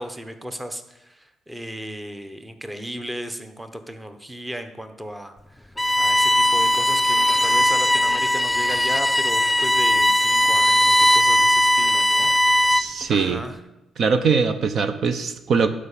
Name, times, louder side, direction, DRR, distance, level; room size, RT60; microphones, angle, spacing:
voice 1, 0.0-13.6, equal, 10° right, 8 dB, 1.0 m, -35 dB
Bowed string instrument, 5.8-13.0, left 1 dB, 5° left, 0.4 m, -19 dB
voice 2, 12.7-13.4 14.0-15.7, right 5 dB, 60° right, 10 dB, 0.8 m, -21 dB
12.0 x 5.0 x 8.3 m, 0.94 s
cardioid pair, 90°, 0 cm